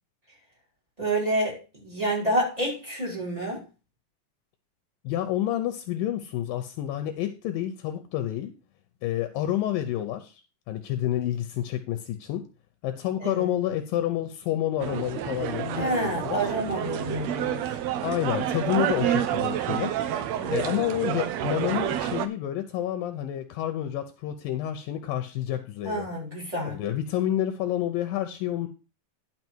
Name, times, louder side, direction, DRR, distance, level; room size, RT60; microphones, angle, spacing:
voice 1, 1.0-3.6 13.2-13.5 15.8-17.7 20.4-20.7 25.8-26.8, right 1 dB, 10° right, 4.7 m, -29 dB
voice 2, 5.0-8.5 9.0-10.4 10.7-12.4 12.8-16.4 18.0-20.0 20.5-26.1 26.6-28.7, left 12 dB, 80° left, 2.5 m, -29 dB
sound 1, 14.8-22.3, right 10 dB, 85° right, 1.5 m, -29 dB
11.0 x 6.0 x 4.5 m
omnidirectional pair, 4.2 m